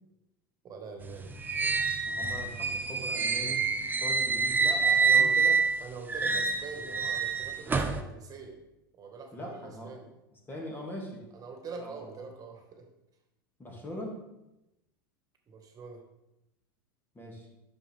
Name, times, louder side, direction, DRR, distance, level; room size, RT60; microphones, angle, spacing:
voice 1, 0.6-1.3 4.6-8.6 8.9-10.1 11.3-12.9 15.5-16.0, right 4 dB, 30° right, 3 dB, 1.9 m, -43 dB
sound 1, 1.0-5.8 6.1-8.0, right 5 dB, 15° right, 0.8 m, -27 dB
voice 2, 2.0-3.7 4.0-4.7 5.1-5.3 9.3-10.0 10.5-11.3 11.8-12.0 13.6-14.2 17.1-17.5, equal, 20° left, -1 dB, 2.5 m, -41 dB
9.8 x 6.6 x 3.7 m, 0.90 s
hypercardioid pair, 90°, 12 cm